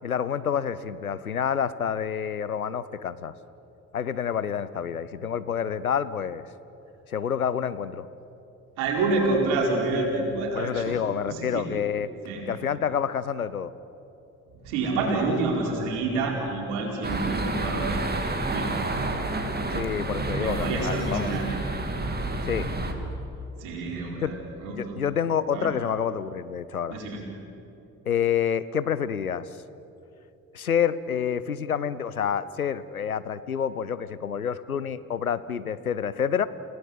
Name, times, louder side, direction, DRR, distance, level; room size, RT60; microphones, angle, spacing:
voice 1, 0.0-3.3 3.9-6.4 7.1-8.1 10.5-12.1 12.5-13.7 19.7-21.3 22.5-22.7 24.2-24.3 24.7-27.0 28.1-29.5 30.5-36.5, left 8 dB, 90° left, 15 dB, 0.6 m, -28 dB
voice 2, 8.8-11.0 11.3-11.7 12.2-12.5 14.5-18.7 20.4-21.6 23.6-25.0 25.5-25.7 26.9-27.2, right 3 dB, 70° right, 0 dB, 4.6 m, -28 dB
sound 1, 17.0-22.9, right 2 dB, 25° right, 2.9 m, -29 dB
29.0 x 17.0 x 7.9 m, 2.9 s
figure-of-eight pair, 45°, 42 cm